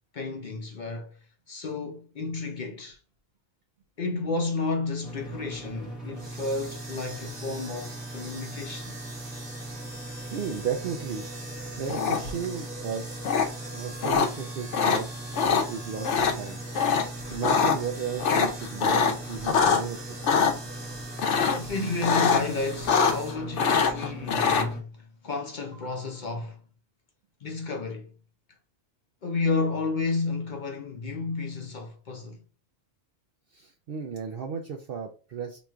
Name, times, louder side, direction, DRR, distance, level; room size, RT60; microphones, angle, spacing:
voice 1, 0.1-1.1 1.5-3.0 4.0-8.9 12.5-12.6 21.5-26.6 27.4-28.1 29.2-32.4, left 3 dB, 50° left, 0.6 m, -32 dB
sound 1, 5.0-24.8, right 1 dB, ahead, 1.0 m, -40 dB
sound 2, 6.1-23.4, right 2 dB, 25° right, 0.8 m, -44 dB
voice 2, 10.3-11.2 11.8-13.2 13.7-16.6 17.3-20.1 33.5-35.6, right 6 dB, 60° right, 0.7 m, -34 dB
sound 3, 11.9-12.5 13.2-13.5 14.0-14.3 14.7-15.0 15.3-15.6 16.0-16.3 16.8-17.0 17.3-17.8 18.2-19.8 20.2-20.5 21.2-21.7 22.0-22.4 22.7-23.3 23.6-24.7, left 6 dB, 85° left, 1.0 m, -23 dB
3.0 x 2.4 x 4.2 m
omnidirectional pair, 1.2 m